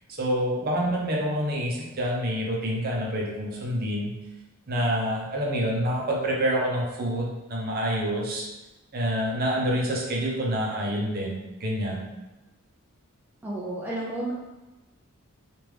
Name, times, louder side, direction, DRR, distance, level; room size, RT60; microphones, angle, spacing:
voice 1, 0.2-4.1 4.7-8.5 8.9-12.1, equal, 45° right, -2 dB, 0.7 m, -27 dB
voice 2, 13.4-14.3, right 1 dB, 10° right, -5 dB, 0.3 m, -31 dB
3.5 x 2.5 x 3.1 m, 1.1 s
head